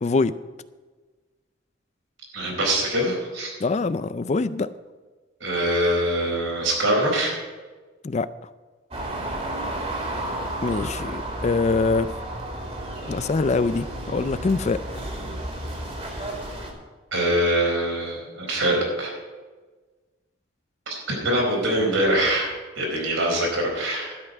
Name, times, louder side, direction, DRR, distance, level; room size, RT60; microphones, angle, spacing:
voice 1, 0.0-0.4 3.6-4.7 8.0-8.3 10.6-12.1 13.1-14.8, left 3 dB, 35° left, 15 dB, 0.4 m, -24 dB
voice 2, 2.3-3.6 5.4-7.3 17.1-19.1 20.9-24.2, right 1 dB, 80° right, -1 dB, 4.3 m, -24 dB
sound 1, 8.9-16.7, right 1 dB, 30° right, 2.4 m, -32 dB
12.5 x 5.8 x 9.1 m, 1.3 s
head